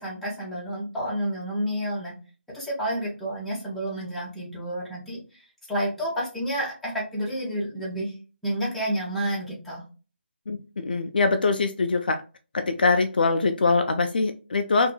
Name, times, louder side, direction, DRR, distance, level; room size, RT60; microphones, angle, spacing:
voice 1, 0.0-2.1 2.5-5.2 5.7-8.1 8.4-9.8, right 1 dB, ahead, 0.9 m, -30 dB
voice 2, 10.5-12.2 12.5-14.9, left 3 dB, 50° left, 0.4 m, -23 dB
3.6 x 2.5 x 2.2 m
figure-of-eight pair, 150°, 6 cm